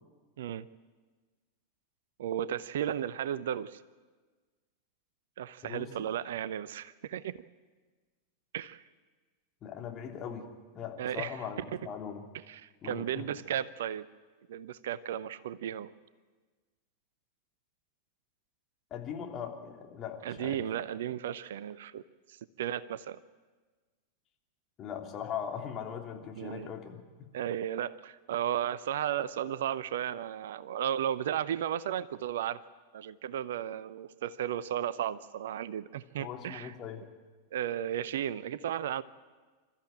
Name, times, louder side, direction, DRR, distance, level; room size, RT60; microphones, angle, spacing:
voice 1, 0.4-0.7 2.2-3.8 5.4-7.4 8.5-8.8 11.0-11.3 12.5-14.1 14.5-15.9 20.2-22.0 22.3-23.2 26.4-26.7 27.3-32.6 32.9-36.7 37.5-39.0, right 10 dB, 60° right, 18 dB, 0.6 m, -34 dB
voice 2, 5.6-5.9 9.6-10.5 10.7-12.2 12.8-13.2 18.9-20.6 24.8-27.0 36.2-37.1, left 8 dB, 30° left, 2 dB, 3.1 m, -40 dB
26.5 x 13.5 x 8.9 m, 1.4 s
figure-of-eight pair, 90°, 0 cm